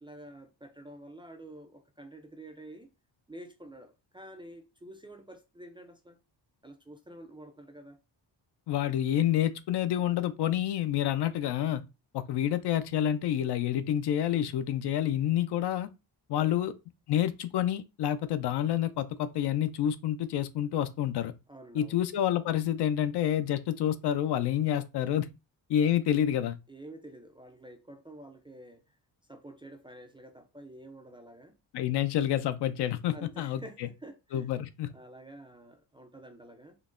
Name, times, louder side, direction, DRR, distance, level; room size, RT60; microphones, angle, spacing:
voice 1, 0.0-2.9 3.3-6.2 6.6-8.0 16.3-16.6 21.5-22.0 25.8-25.9 26.7-29.0 29.3-31.6 33.1-34.5 34.9-36.8, right 1 dB, 10° right, 0.3 m, -49 dB
voice 2, 8.7-11.8 12.1-15.9 16.3-16.7 17.1-21.3 21.7-25.3 25.7-26.6 31.7-33.9 34.3-34.9, left 11 dB, 65° left, 0.5 m, -28 dB
3.8 x 2.1 x 2.4 m
cardioid pair, 90°, 44 cm